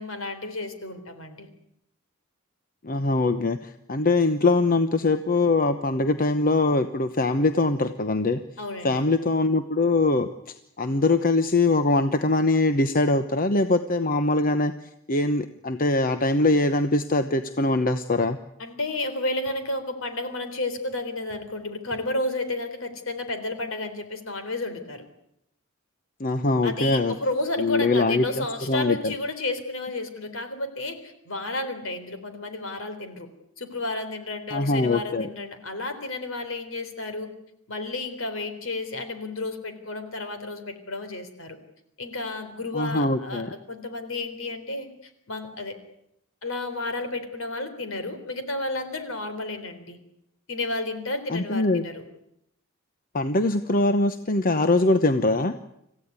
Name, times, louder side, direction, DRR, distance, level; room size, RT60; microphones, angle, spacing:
voice 1, 0.0-1.5 8.6-9.0 18.6-25.0 26.6-33.3 33.6-37.3 37.7-41.6 42.0-44.9 45.3-45.8 46.4-50.0 50.5-52.0, left 2 dB, 65° left, 8 dB, 3.8 m, -32 dB
voice 2, 2.8-8.4 8.8-14.7 15.1-18.4 26.2-27.2 27.6-29.1 34.5-35.3 42.7-43.5 51.3-51.8 53.1-55.5, left 2 dB, 40° left, 9 dB, 0.9 m, -22 dB
27.0 x 15.5 x 9.6 m, 0.80 s
head